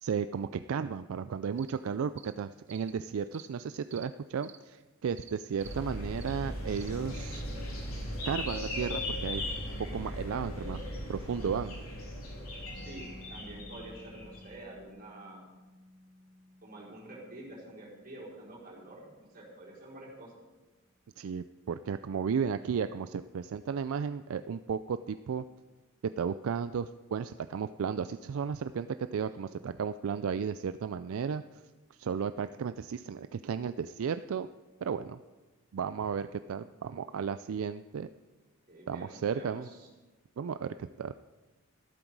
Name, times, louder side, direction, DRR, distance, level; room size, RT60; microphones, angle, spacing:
voice 1, 0.0-7.4 8.3-9.4 9.9-11.8 21.2-25.4 26.2-31.4 32.0-34.5 34.8-35.2 35.7-38.1 38.9-39.7 40.4-41.1, right 6 dB, 75° right, 12 dB, 0.4 m, -34 dB
sound 1, 1.6-1.7 2.2-2.3 2.7-2.9 3.3-3.5 3.9-4.1 4.4-4.6 5.2-5.3 5.6-5.7 6.2-6.4 6.7-6.9, right 11 dB, 60° right, 0.9 m, -51 dB
sound 2, 5.6-14.5, left 1 dB, 75° left, 3.5 m, -38 dB
Mallet percussion, 12.7-20.2, left 1 dB, 15° left, 2.4 m, -56 dB
voice 2, 12.7-15.5 16.6-20.4 38.7-39.9, right 1 dB, 40° right, -5 dB, 4.5 m, -48 dB
13.5 x 12.0 x 4.7 m, 1.2 s
head